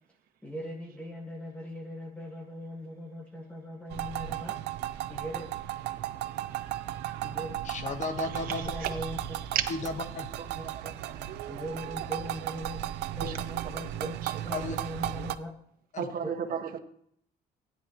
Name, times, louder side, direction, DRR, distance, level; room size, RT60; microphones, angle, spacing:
voice 1, 0.4-4.6 5.1-5.5 7.2-7.5 8.6-9.2 10.5-11.0 11.5-12.8 13.2-14.2 14.4-15.5 16.2-16.3, equal, 5° left, 0 dB, 1.7 m, -39 dB
sound 1, 3.9-15.4, right 13 dB, 85° right, 0.6 m, -35 dB
voice 2, 7.6-8.7 9.7-10.3 14.5-14.8 15.9-16.1, left 4 dB, 45° left, 7 dB, 1.3 m, -34 dB
voice 3, 16.0-16.8, right 8 dB, 60° right, 5 dB, 1.4 m, -31 dB
16.0 x 10.5 x 3.0 m, 0.69 s
cardioid pair, 110°, 17 cm